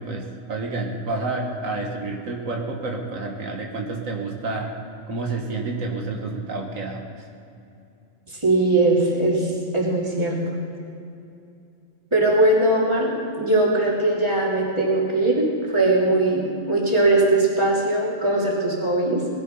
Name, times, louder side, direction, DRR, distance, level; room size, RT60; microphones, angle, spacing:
voice 1, 0.0-4.7 5.1-7.0, right 3 dB, 90° right, 1 dB, 1.9 m, -29 dB
voice 2, 8.4-10.4 12.1-15.5 15.7-19.2, right 2 dB, 20° right, -5 dB, 3.1 m, -20 dB
19.5 x 13.0 x 5.6 m, 2.6 s
omnidirectional pair, 1.4 m